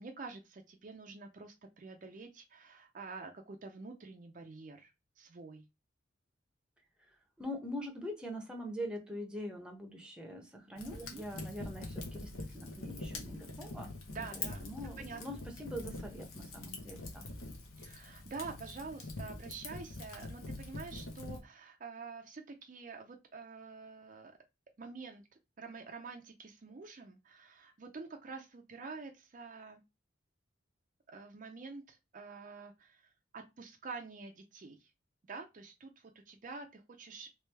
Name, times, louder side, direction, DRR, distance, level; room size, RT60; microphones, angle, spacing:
voice 1, 0.0-5.7 11.0-11.2 14.1-15.2 17.8-24.3 24.8-25.3 25.6-29.8 31.1-34.9 35.2-37.3, right 4 dB, 40° right, 0.4 m, -47 dB
voice 2, 7.4-13.9 14.2-17.3, equal, 5° right, 0.7 m, -43 dB
Fire, 10.8-21.4, left 2 dB, 85° left, 1.0 m, -44 dB
3.2 x 3.2 x 3.3 m
head